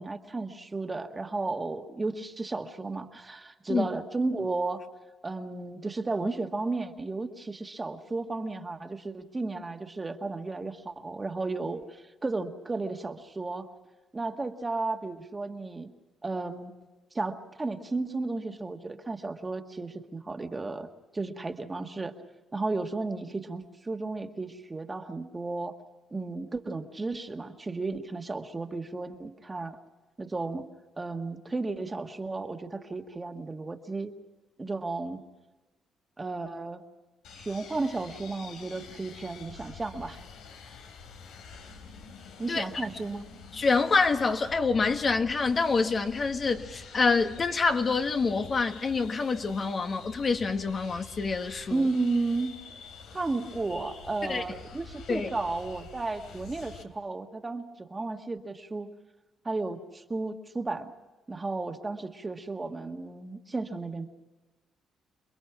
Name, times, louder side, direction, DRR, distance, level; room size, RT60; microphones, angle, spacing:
voice 1, 0.0-4.8 5.2-13.7 14.1-15.9 16.2-16.7 17.1-20.9 21.1-22.2 22.5-25.8 26.1-29.8 30.2-30.7 31.0-34.1 34.6-35.2 36.2-36.8 37.3-40.2 42.4-43.3 51.7-52.6 53.1-58.9 59.4-60.9 61.3-64.1, right 3 dB, 25° right, 1.8 m, -33 dB
sound 1, 37.2-56.8, left 5 dB, 90° left, 2.8 m, -47 dB
voice 2, 43.5-51.9 54.3-54.4 55.1-55.3, left 4 dB, 40° left, 1.5 m, -26 dB
28.5 x 21.5 x 6.1 m
cardioid pair, 90°, 0 cm